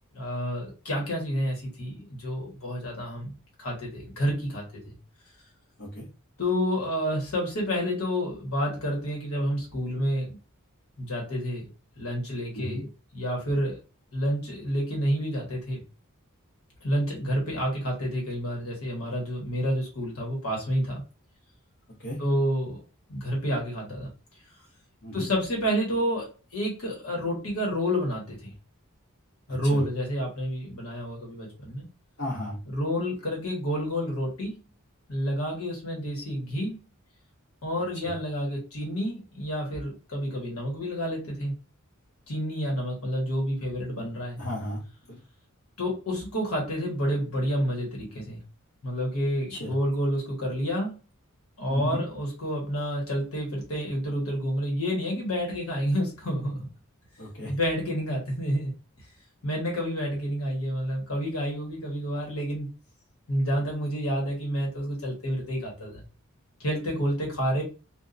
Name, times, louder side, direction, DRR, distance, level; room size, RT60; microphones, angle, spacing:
voice 1, 0.1-3.3 3.6-4.7 6.4-10.4 11.0-11.7 12.0-12.9 13.1-13.8 14.1-15.8 16.8-21.0 22.2-22.8 23.1-24.1 25.1-28.5 29.5-31.8 32.7-34.6 35.1-36.8 37.6-41.5 42.3-44.4 45.8-48.4 48.8-51.0 51.6-56.7 57.5-58.7 59.4-62.7 63.3-66.0 66.6-67.6, equal, 80° left, -1 dB, 1.2 m, -29 dB
voice 2, 32.2-32.6 38.0-38.1 44.4-44.8 45.1-45.2 49.5-49.7 51.7-52.0 57.2-57.5, left 1 dB, 55° left, -6 dB, 1.0 m, -34 dB
2.7 x 2.3 x 2.5 m, 0.32 s
head